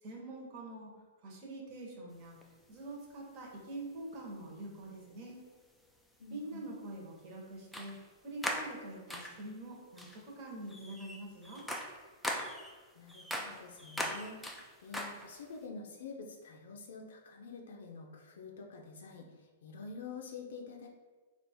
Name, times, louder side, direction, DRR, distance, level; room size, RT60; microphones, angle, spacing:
voice 1, 0.0-0.9 1.2-2.4 2.7-5.5 6.3-11.7, right 1 dB, 35° right, -2 dB, 1.1 m, -45 dB
sound 1, 2.4-2.5 4.1-4.3 5.3-5.4 7.7-8.1 8.4-9.5 10.0-10.2 10.7-15.6, equal, 5° left, 0.4 m, -40 dB
voice 2, 6.2-6.7 13.0-14.5 14.8-20.9, left 4 dB, 75° left, 1 dB, 0.5 m, -47 dB
3.4 x 2.4 x 4.3 m, 1.3 s
hypercardioid pair, 155°, 0 cm